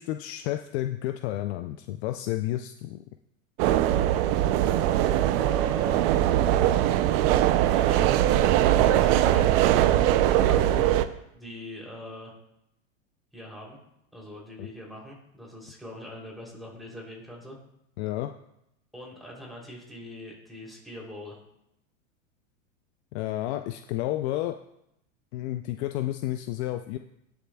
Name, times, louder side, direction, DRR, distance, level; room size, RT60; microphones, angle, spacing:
voice 1, 0.0-3.0 14.6-14.7 18.0-18.3 23.1-24.6 25.3-27.0, left 14 dB, 50° left, 8 dB, 0.5 m, -31 dB
sound 1, 3.6-11.0, right 12 dB, 45° right, 0.6 m, -21 dB
voice 2, 5.3-6.7 7.7-8.3 8.7-11.0 11.3-12.3 13.3-13.8 14.1-17.6 18.9-21.4, left 1 dB, ahead, -3 dB, 3.2 m, -43 dB
18.0 x 7.0 x 2.3 m, 0.81 s
hypercardioid pair, 120°, 41 cm